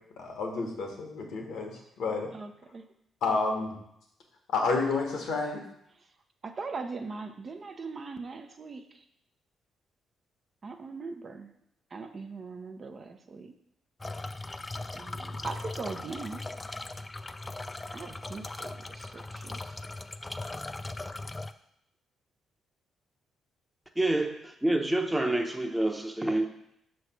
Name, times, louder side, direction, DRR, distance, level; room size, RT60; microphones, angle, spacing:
voice 1, 0.2-2.3 3.2-3.8 4.5-5.6, left 3 dB, 75° left, 1.2 m, -30 dB
voice 2, 2.3-2.9 6.0-6.1 6.4-9.0 10.6-11.5 11.9-13.5 14.9-16.4 17.9-19.8, right 4 dB, 45° right, 0.7 m, -40 dB
sound 1, 14.0-21.5, left 2 dB, 25° left, 0.4 m, -39 dB
voice 3, 24.0-26.5, right 1 dB, 10° right, 0.9 m, -27 dB
5.9 x 3.2 x 5.7 m
supercardioid pair, 55°, 0 cm